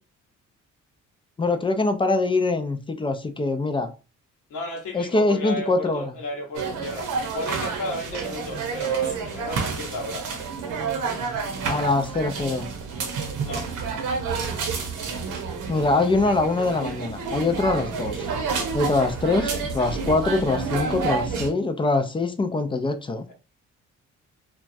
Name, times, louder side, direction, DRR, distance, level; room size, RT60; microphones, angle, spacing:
voice 1, 1.4-3.9 4.9-6.1 11.6-12.7 15.7-18.3 18.7-23.3, left 3 dB, 15° left, 0.4 m, -23 dB
voice 2, 4.5-10.3 13.4-13.7, equal, 75° left, 0.9 m, -32 dB
sound 1, 6.5-21.5, right 4 dB, 85° right, 0.8 m, -29 dB
3.0 x 2.3 x 2.6 m
cardioid pair, 90°, 30 cm